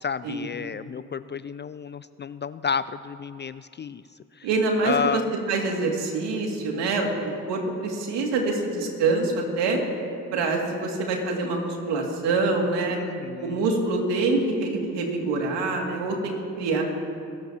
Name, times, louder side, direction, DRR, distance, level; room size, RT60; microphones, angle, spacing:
voice 1, 0.0-4.0 4.4-4.5 4.8-5.3 12.9-13.7, left 6 dB, 30° left, 15 dB, 0.3 m, -31 dB
voice 2, 4.4-5.2 5.5-9.8 10.3-13.0 13.4-16.8, right 3 dB, 75° right, 1 dB, 2.4 m, -25 dB
25.0 x 14.0 x 2.9 m, 2.4 s
hypercardioid pair, 50°, 43 cm